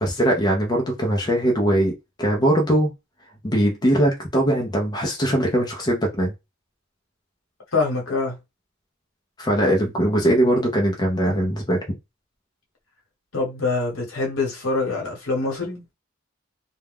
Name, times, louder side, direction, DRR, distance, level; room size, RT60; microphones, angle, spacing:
voice 1, 0.0-2.9 3.4-6.3 9.4-12.0, right 1 dB, 20° left, 0.5 m, -21 dB
voice 2, 7.7-8.4 13.3-15.8, left 3 dB, 70° left, 1.0 m, -24 dB
2.2 x 2.1 x 3.4 m
head